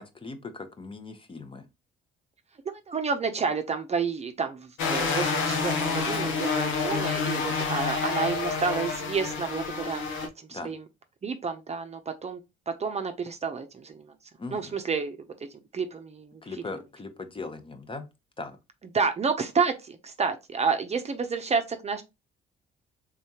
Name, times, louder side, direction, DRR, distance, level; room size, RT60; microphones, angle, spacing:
voice 1, 0.0-1.7 10.5-10.7 14.4-14.8 16.4-18.1 18.4-18.6, left 3 dB, 25° left, 0.8 m, -39 dB
voice 2, 2.7-10.0 10.5-10.8 11.2-12.4 12.8-14.1 14.5-15.3 15.7-16.3 18.9-22.0, right 5 dB, 35° right, 0.6 m, -30 dB
sound 1, 4.8-10.3, left 5 dB, 85° left, 1.1 m, -28 dB
3.6 x 3.4 x 2.8 m
cardioid pair, 90°, 20 cm